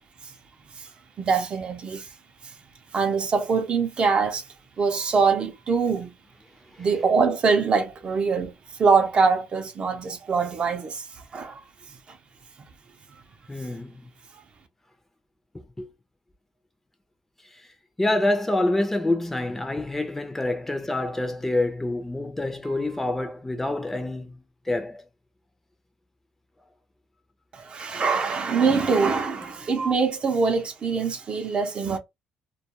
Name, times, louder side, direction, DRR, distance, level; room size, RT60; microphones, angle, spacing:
voice 1, 1.2-2.1 2.4-2.6 2.9-4.5 4.8-6.1 6.8-11.6 11.9-12.2 13.7-13.8 14.3-14.4 27.5-32.0, right 5 dB, 40° right, 0.5 m, -24 dB
voice 2, 13.5-14.1 15.8-15.9 17.5-17.6 18.0-24.4 24.7-25.0 29.4-29.7, left 2 dB, 10° left, 0.5 m, -27 dB
2.3 x 2.3 x 2.8 m
cardioid pair, 115°, 3 cm